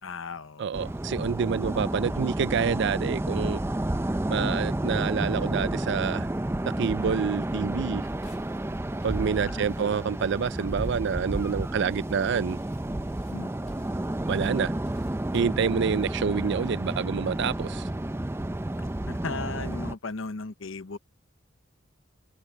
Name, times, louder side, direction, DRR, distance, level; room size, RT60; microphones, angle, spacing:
voice 1, 0.0-0.7 9.4-10.0 10.6-10.7 13.3-13.5 19.1-21.0, left 3 dB, 80° left, 0.9 m, -36 dB
voice 2, 0.6-3.6 4.3-6.3 6.8-8.0 9.0-12.6 14.3-14.7 15.3-17.9, right 6 dB, 60° right, 0.4 m, -27 dB
sound 1, 0.7-19.9, right 1 dB, 15° right, 0.5 m, -31 dB
sound 2, 8.0-16.1, left 1 dB, 35° left, 2.7 m, -55 dB
head